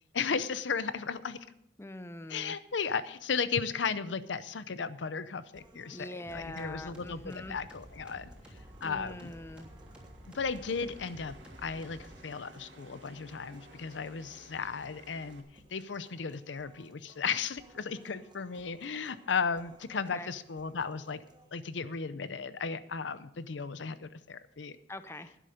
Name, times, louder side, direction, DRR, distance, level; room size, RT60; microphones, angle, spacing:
voice 1, 0.1-1.4 2.3-8.3 8.8-9.3 10.3-11.3 11.6-21.2 21.5-24.8, left 5 dB, 80° left, 15 dB, 0.6 m, -35 dB
voice 2, 1.8-2.6 5.9-7.6 8.8-9.7 20.1-20.3 24.9-25.4, left 1 dB, 15° left, 12 dB, 0.5 m, -43 dB
sound 1, 5.5-21.5, right 2 dB, 25° right, 1.2 m, -61 dB
sound 2, 5.9-15.4, right 1 dB, 75° right, 2.1 m, -58 dB
sound 3, 6.2-12.2, equal, 5° right, 3.2 m, -52 dB
12.0 x 10.0 x 5.1 m, 0.77 s
head